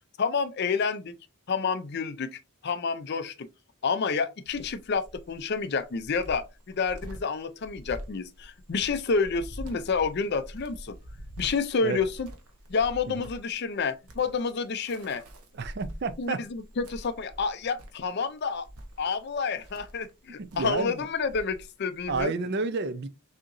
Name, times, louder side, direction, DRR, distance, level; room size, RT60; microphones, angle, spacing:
voice 1, 0.2-1.1 1.5-3.3 3.8-10.9 11.4-12.3 12.7-15.2 16.2-18.7 19.0-22.3, left 5 dB, 45° left, 0.4 m, -29 dB
Cricket, 4.5-22.2, equal, 75° right, 0.9 m, -45 dB
voice 2, 15.5-16.4 20.4-21.1 22.1-23.1, right 4 dB, 45° right, 0.4 m, -30 dB
6.3 x 2.9 x 2.6 m
head